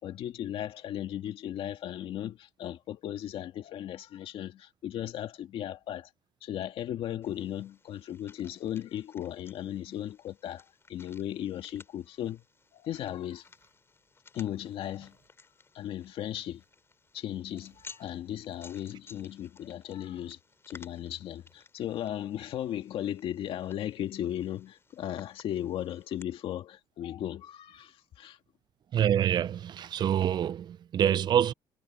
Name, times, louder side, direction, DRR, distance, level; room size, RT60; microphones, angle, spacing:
voice 1, 0.0-6.1 6.4-12.4 12.7-13.5 14.3-15.2 15.7-16.6 17.1-20.4 20.7-28.4, left 11 dB, 65° left, 2.2 m, -36 dB
sound 1, 7.2-26.2, left 4 dB, 25° left, 4.2 m, -57 dB
voice 2, 28.9-31.5, right 9 dB, 45° right, 0.6 m, -26 dB
cardioid pair, 135°, 10 cm